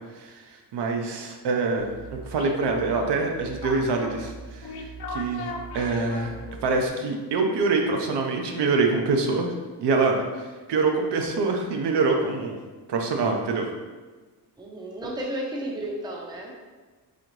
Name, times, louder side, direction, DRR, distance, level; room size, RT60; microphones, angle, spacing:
voice 1, 0.1-1.9 2.3-4.7 5.1-6.3 6.6-9.5 9.8-10.2 10.7-12.6 12.9-13.7, right 3 dB, 75° right, 3 dB, 0.7 m, -25 dB
sound 1, 1.8-6.9, left 1 dB, 65° left, 0.7 m, -38 dB
voice 2, 14.6-16.5, right 1 dB, 10° right, -1 dB, 0.5 m, -33 dB
4.1 x 3.8 x 3.1 m, 1.3 s
wide cardioid pair, 165°, 41 cm